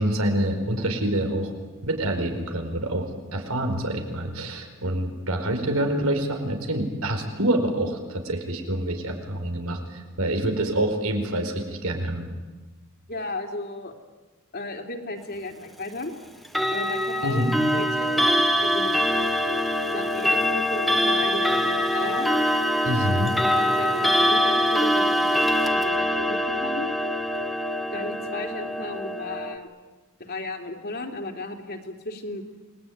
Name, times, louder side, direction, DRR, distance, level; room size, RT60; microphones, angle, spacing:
voice 1, 0.0-1.5 1.8-12.3 17.2-17.5 22.8-23.3, right 1 dB, 90° right, 5 dB, 4.8 m, -26 dB
voice 2, 13.1-13.9 14.5-16.1 16.7-17.4 17.7-19.0 19.8-22.3 23.5-26.9 27.9-29.7 30.2-32.4, left 2 dB, 50° left, 3 dB, 3.3 m, -34 dB
Clock, 16.4-29.6, equal, ahead, 1.5 m, -23 dB
29.0 x 20.5 x 9.5 m, 1.3 s
head